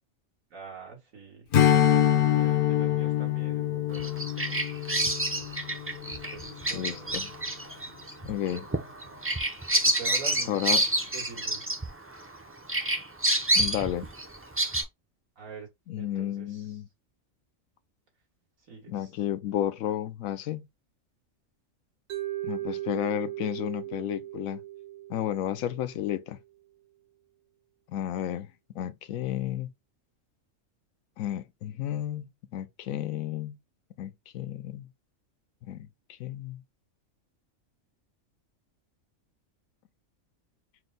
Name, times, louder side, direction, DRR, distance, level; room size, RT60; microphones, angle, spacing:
voice 1, 0.5-1.5 2.1-4.6 6.1-7.1 8.5-8.7 9.8-11.7 15.4-15.7 16.0-16.8 18.7-19.1, right 6 dB, 90° right, 2.0 m, -45 dB
Strum, 1.5-6.3, left 11 dB, 55° left, 0.6 m, -25 dB
Bird vocalization bird call bird song, 3.9-12.4 12.7-14.8, right 1 dB, 20° right, 0.3 m, -28 dB
voice 2, 6.7-7.3 8.2-8.7 10.5-10.8 13.5-14.1 15.9-16.9 18.9-20.7 22.4-24.6 25.1-26.4 27.9-28.5 28.7-29.7 31.2-33.6 34.0-34.9 35.6-35.9 36.2-36.6, left 11 dB, 90° left, 1.0 m, -32 dB
Mallet percussion, 22.1-26.2, right 15 dB, 65° right, 0.9 m, -37 dB
4.5 x 2.2 x 3.9 m
omnidirectional pair, 1.4 m